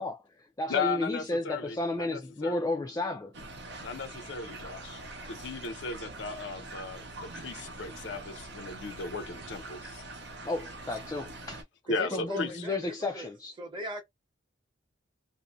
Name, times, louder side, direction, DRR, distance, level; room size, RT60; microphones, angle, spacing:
voice 1, 0.0-3.4 10.4-11.6 12.1-13.5, left 2 dB, 20° left, 0.3 m, -33 dB
voice 2, 0.7-2.6 3.8-10.0 11.9-12.5, left 4 dB, 65° left, 0.5 m, -36 dB
sound 1, 3.3-11.6, right 2 dB, 60° right, 0.6 m, -44 dB
voice 3, 11.9-13.3 13.6-14.0, equal, 25° right, 0.9 m, -39 dB
2.6 x 2.1 x 2.4 m
head